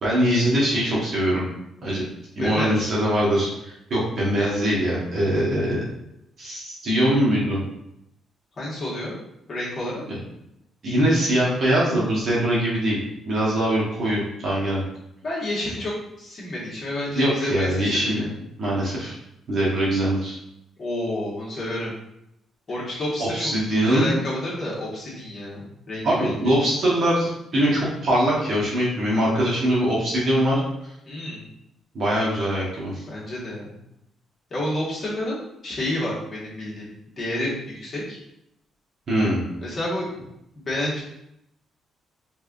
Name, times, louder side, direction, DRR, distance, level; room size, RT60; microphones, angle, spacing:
voice 1, 0.0-1.5 1.8-2.0 2.3-5.8 6.4-7.6 10.8-13.0 13.3-14.8 17.1-18.3 18.6-19.1 19.5-20.4 23.2-24.1 26.0-30.6 31.9-33.0 39.1-39.4, right 1 dB, 55° right, -5 dB, 1.2 m, -22 dB
voice 2, 2.4-2.9 8.6-9.2 9.5-10.0 15.2-15.9 16.2-18.3 20.8-21.9 22.7-23.5 23.8-26.3 31.0-31.5 33.1-33.8 34.5-36.9 37.2-38.2 39.6-40.0 40.5-41.0, left 1 dB, 40° left, -6 dB, 1.5 m, -29 dB
3.5 x 3.3 x 2.5 m, 0.81 s
cardioid pair, 90°, 0 cm